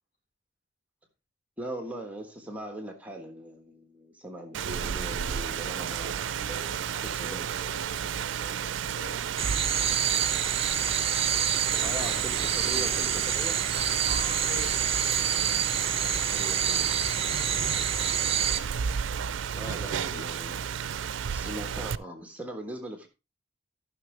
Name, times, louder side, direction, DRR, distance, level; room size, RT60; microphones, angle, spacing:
voice 1, 1.6-6.3 6.9-7.5 11.8-13.6 16.3-18.3 19.6-20.6 21.3-23.1, right 1 dB, 10° right, 3 dB, 1.4 m, -40 dB
Rain, 4.5-22.0, right 7 dB, 85° right, 0.4 m, -32 dB
voice 2, 6.2-9.2 10.5-12.3 14.0-15.2 19.4-20.3, equal, 55° left, -1 dB, 5.1 m, -45 dB
sound 1, 9.4-18.6, right 8 dB, 30° right, 0.7 m, -27 dB
14.0 x 6.2 x 3.3 m, 0.27 s
head